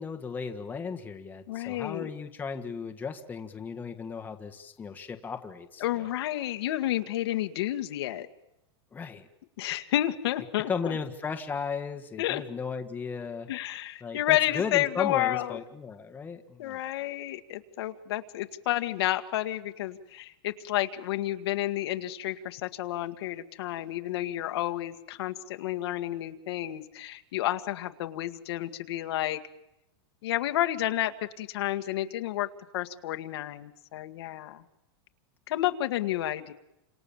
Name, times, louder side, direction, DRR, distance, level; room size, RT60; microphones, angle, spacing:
voice 1, 0.0-6.1 8.9-9.3 10.7-13.5 14.0-16.8, left 5 dB, 10° left, 5 dB, 1.6 m, -36 dB
voice 2, 1.5-2.1 5.8-8.3 9.6-10.9 12.2-12.4 13.5-15.6 16.6-29.4 30.2-32.5 32.7-34.6 35.5-36.5, left 14 dB, 70° left, 7 dB, 1.9 m, -30 dB
29.0 x 27.0 x 7.3 m, 0.86 s
supercardioid pair, 155°, 14 cm